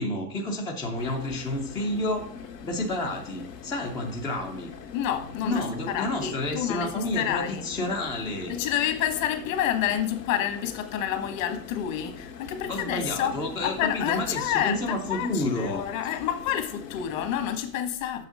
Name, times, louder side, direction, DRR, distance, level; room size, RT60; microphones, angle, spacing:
voice 1, 0.0-2.3 2.6-4.7 5.4-8.6 12.7-15.8, left 1 dB, 10° left, 0.4 m, -30 dB
sound 1, 1.0-17.6, left 6 dB, 80° left, 2.0 m, -42 dB
voice 2, 4.9-5.6 5.9-7.6 8.5-18.3, left 10 dB, 50° left, 1.5 m, -29 dB
6.4 x 6.1 x 5.1 m
hypercardioid pair, 125°, 49 cm